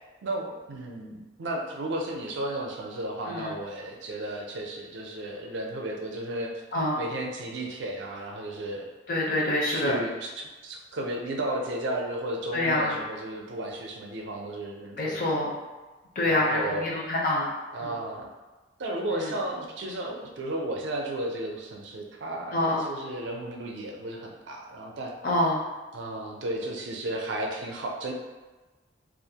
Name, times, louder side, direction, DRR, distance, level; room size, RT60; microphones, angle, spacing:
voice 1, 0.2-6.5 6.9-8.9 9.7-15.5 16.2-17.0 17.7-18.3 18.8-25.1 25.9-28.1, right 1 dB, 70° right, 0 dB, 0.4 m, -34 dB
voice 2, 9.1-10.0 12.5-12.9 15.0-15.5 16.2-17.5 17.8-17.9 19.1-19.3 22.5-22.8 25.2-25.6, left 1 dB, 45° left, -3 dB, 0.5 m, -26 dB
2.4 x 2.1 x 2.7 m, 1.2 s
head